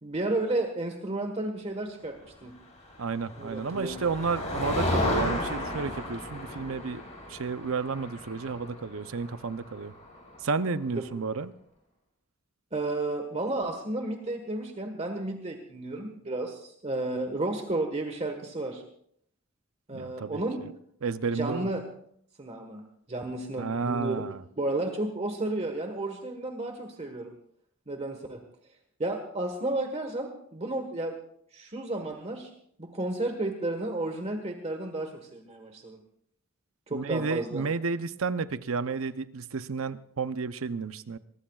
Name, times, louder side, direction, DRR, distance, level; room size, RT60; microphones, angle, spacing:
voice 1, 0.0-2.1 2.4-2.5 3.4-4.0 10.9-11.0 12.7-18.8 19.9-20.6 21.3-21.8 22.4-22.8 23.1-24.2 24.6-27.3 27.9-28.4 29.0-31.2 31.5-32.5 32.8-36.0 36.9-37.6, right 2 dB, 30° right, 4 dB, 1.4 m, -32 dB
Motor vehicle (road), 2.8-10.6, left 1 dB, 35° left, 5.4 m, -34 dB
voice 2, 3.0-9.9 10.4-11.5 19.9-20.4 21.0-21.7 23.6-24.4 36.9-41.2, right 4 dB, 80° right, 12 dB, 0.7 m, -31 dB
23.5 x 20.0 x 2.4 m, 0.67 s
head